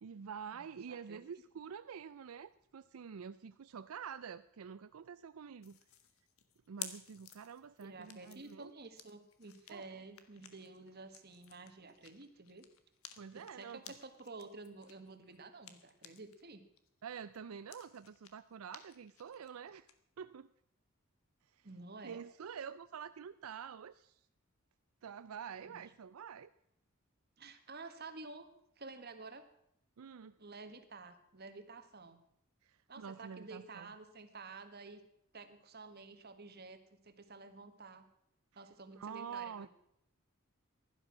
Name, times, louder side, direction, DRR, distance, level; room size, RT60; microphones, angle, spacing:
voice 1, 0.0-5.8 6.7-8.8 9.7-10.0 13.2-13.8 17.0-19.9 20.2-20.5 21.5-21.7 22.0-24.2 25.0-26.5 30.0-30.4 32.6-33.9 38.5-38.6 38.9-39.7, right 7 dB, 80° right, 0.4 m, -47 dB
voice 2, 0.5-1.3 7.8-12.6 13.3-16.6 21.6-22.2 25.6-25.8 27.4-28.5 28.8-29.4 30.4-32.2 32.9-35.0 35.3-36.8 37.0-38.1 38.6-39.7, right 3 dB, 50° right, 1.6 m, -51 dB
sound 1, 5.6-16.4 16.8-19.9, left 10 dB, 85° left, 1.5 m, -54 dB
16.0 x 11.5 x 6.2 m
head